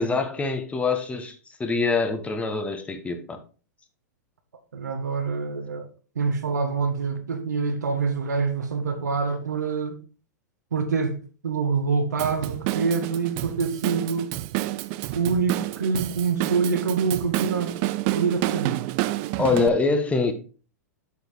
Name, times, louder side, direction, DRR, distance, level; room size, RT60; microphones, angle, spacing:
voice 1, 0.0-3.4 19.4-20.3, left 4 dB, 15° left, 1.1 m, -24 dB
voice 2, 4.7-5.9 6.1-10.0 10.7-14.3 15.1-17.8 18.1-18.8, right 5 dB, 80° right, 1.5 m, -26 dB
Drum kit / Drum, 12.2-19.7, right 17 dB, 45° right, 0.5 m, -29 dB
8.1 x 5.1 x 4.5 m
hypercardioid pair, 110°, 9 cm